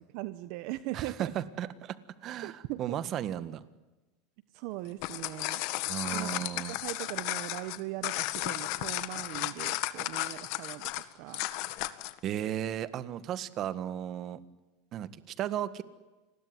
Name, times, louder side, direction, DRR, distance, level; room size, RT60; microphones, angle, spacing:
voice 1, 0.1-1.3 2.4-3.0 4.5-5.6 6.1-10.9 11.2-11.5, right 17 dB, 55° right, 13 dB, 1.1 m, -40 dB
voice 2, 0.9-3.6 5.9-6.8 12.2-14.4 14.9-15.8, right 11 dB, 40° right, 14 dB, 1.7 m, -35 dB
sound 1, 4.9-12.2, left 18 dB, 60° left, 1.7 m, -34 dB
29.5 x 21.0 x 9.5 m, 1.2 s
supercardioid pair, 140°, 0 cm